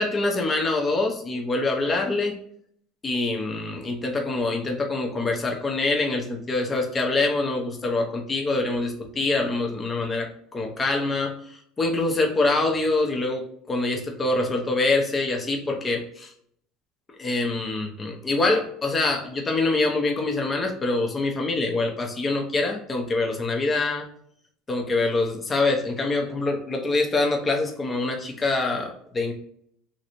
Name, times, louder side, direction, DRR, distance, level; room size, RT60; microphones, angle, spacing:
voice 1, 0.0-2.4 3.0-16.3 17.2-24.1 24.7-29.3, left 2 dB, 25° left, 2 dB, 0.7 m, -25 dB
3.1 x 2.6 x 3.0 m, 0.66 s
supercardioid pair, 100°, 0 cm